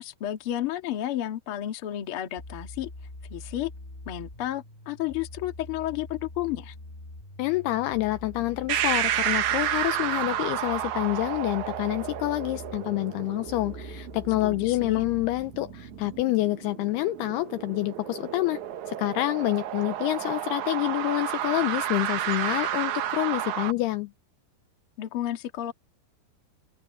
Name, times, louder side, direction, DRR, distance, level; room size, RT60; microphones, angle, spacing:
voice 1, 0.0-2.9 3.3-3.7 4.0-6.7 14.4-15.0 25.0-25.7, left 12 dB, 55° left, 1.6 m, -32 dB
sound 1, 2.4-16.2, left 2 dB, 25° left, 1.2 m, -44 dB
voice 2, 7.4-18.6 18.9-24.1, left 18 dB, 85° left, 2.4 m, -27 dB
sound 2, 8.7-23.7, right 11 dB, 85° right, 1.6 m, -31 dB
omnidirectional pair, 5.1 m